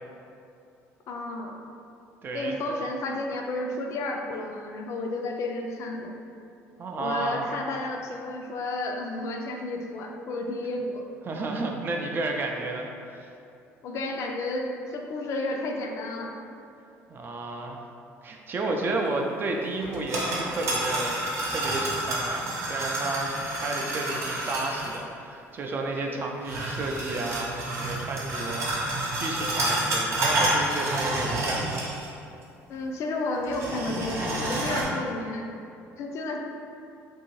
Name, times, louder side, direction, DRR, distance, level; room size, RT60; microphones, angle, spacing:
voice 1, 1.1-1.6 2.3-6.1 7.0-11.0 13.8-16.4 25.9-26.2 32.7-35.5 36.0-36.4, left 2 dB, 60° left, 2 dB, 0.3 m, -32 dB
voice 2, 2.2-2.6 6.8-7.4 11.3-13.3 17.1-17.8 18.2-21.2 21.5-31.9, right 2 dB, 40° right, 1 dB, 0.4 m, -32 dB
sound 1, 19.8-25.0 26.4-32.2 32.4-32.5 33.4-34.8, right 1 dB, 55° right, 0.7 m, -29 dB
2.7 x 2.6 x 3.0 m, 2.6 s
cardioid pair, 95°, 6 cm